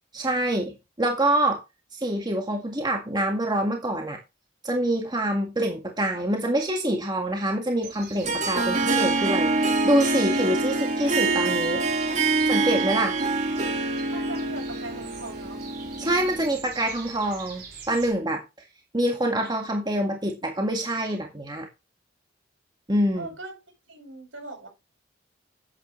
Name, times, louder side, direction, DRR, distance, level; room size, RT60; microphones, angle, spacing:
voice 1, 0.1-1.6 1.9-4.2 4.6-11.8 12.5-13.2 16.0-18.4 18.9-21.7 22.9-23.3, right 1 dB, 20° right, 1.9 m, -26 dB
sound 1, 7.8-18.1, right 5 dB, 50° right, 5.0 m, -45 dB
Harp, 8.2-16.7, right 3 dB, 35° right, 1.9 m, -25 dB
voice 2, 14.1-15.6 23.1-23.6 23.9-24.7, right 2 dB, 85° right, 7.6 m, -39 dB
12.0 x 8.6 x 3.3 m
head